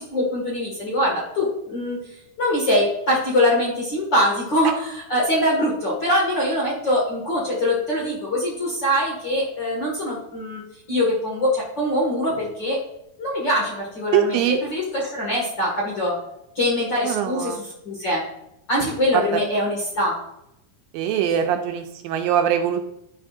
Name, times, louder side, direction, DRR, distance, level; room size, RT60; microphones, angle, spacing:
voice 1, 0.1-10.6 10.9-12.8 13.2-16.2 16.6-18.2 18.7-20.2, left 1 dB, 40° left, -4 dB, 1.8 m, -23 dB
voice 2, 14.1-14.6 17.0-17.6 19.1-19.4 20.9-22.8, right 9 dB, 80° right, 5 dB, 2.3 m, -22 dB
10.5 x 6.3 x 2.5 m, 0.82 s
omnidirectional pair, 4.2 m